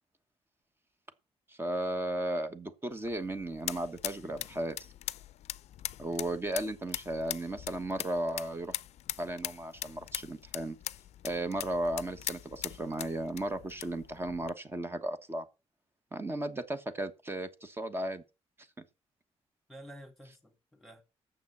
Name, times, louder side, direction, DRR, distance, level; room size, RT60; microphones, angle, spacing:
voice 1, 1.5-4.8 6.0-8.8 9.2-10.8 11.2-15.4 16.1-18.2, right 1 dB, 20° right, 1.2 m, -35 dB
sound 1, 2.9-14.5, left 12 dB, 80° left, 0.5 m, -42 dB
voice 2, 19.7-21.0, equal, ahead, 2.4 m, -51 dB
9.1 x 7.2 x 7.2 m
cardioid pair, 125°, 11 cm